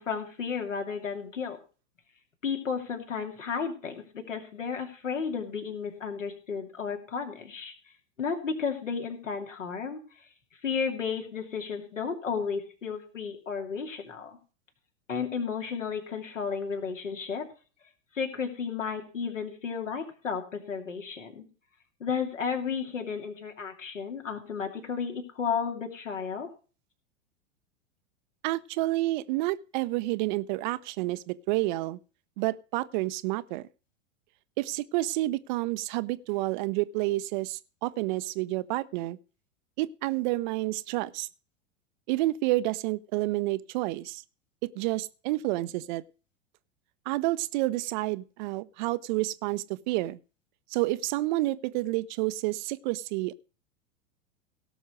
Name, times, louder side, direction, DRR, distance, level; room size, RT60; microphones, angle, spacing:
voice 1, 0.0-1.6 2.4-7.7 8.2-10.0 10.6-14.4 15.1-17.5 18.1-21.4 22.0-26.5, left 6 dB, 75° left, 2.8 m, -33 dB
voice 2, 28.4-32.0 32.4-33.7 34.6-39.2 39.8-41.3 42.1-44.2 44.6-46.0 47.1-50.2 50.7-53.3, right 18 dB, 40° right, 0.6 m, -29 dB
17.5 x 6.3 x 5.0 m
figure-of-eight pair, 90°, 38 cm